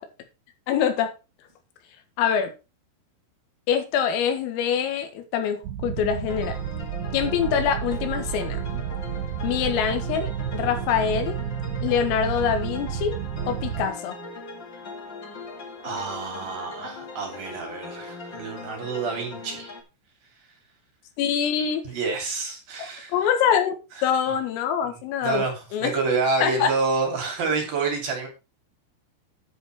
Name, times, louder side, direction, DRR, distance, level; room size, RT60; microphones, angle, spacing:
voice 1, 0.7-1.1 2.2-2.5 3.7-6.6 7.1-8.6 9.4-11.4 11.8-13.2 13.5-14.2 21.2-21.8 22.8-23.7 24.0-25.4 25.7-26.0 26.4-26.7, left 8 dB, 90° left, 4.3 m, -24 dB
sound 1, 5.6-13.9, right 9 dB, 70° right, 2.9 m, -31 dB
sound 2, 6.3-19.8, left 3 dB, 65° left, 1.1 m, -40 dB
voice 2, 15.8-19.8 21.9-23.1 24.0-24.1 25.2-28.3, right 4 dB, 50° right, 4.3 m, -28 dB
10.0 x 7.9 x 4.6 m
omnidirectional pair, 5.8 m